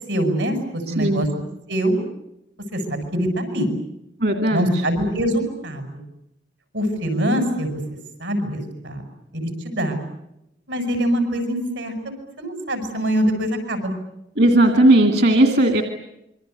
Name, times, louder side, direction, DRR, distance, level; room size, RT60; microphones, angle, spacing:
voice 1, 0.1-1.3 1.7-2.0 2.7-3.7 4.5-6.0 6.7-7.8 8.2-9.1 9.3-10.0 10.7-11.9 12.4-13.9, equal, 85° right, 7 dB, 7.7 m, -23 dB
voice 2, 0.9-1.3 4.2-4.8 14.4-15.8, right 1 dB, 60° right, 6 dB, 2.4 m, -16 dB
27.0 x 24.0 x 8.4 m, 0.85 s
head